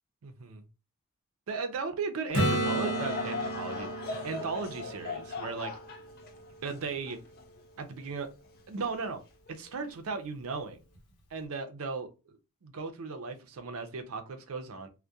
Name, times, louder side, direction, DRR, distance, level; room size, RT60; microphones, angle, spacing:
voice 1, 0.2-0.6 1.5-3.9 4.2-5.7 6.6-7.2 7.8-8.3 8.7-9.2 9.5-10.8 11.3-14.9, right 4 dB, 65° right, 0.5 m, -36 dB
Acoustic guitar / Strum, 2.3-6.1 10.9-11.0, right 1 dB, 85° left, 0.8 m, -33 dB
Laughter / Crowd, 2.5-8.0 8.5-8.6 9.5-9.7, left 4 dB, 45° left, 0.3 m, -39 dB
2.2 x 2.1 x 2.6 m
head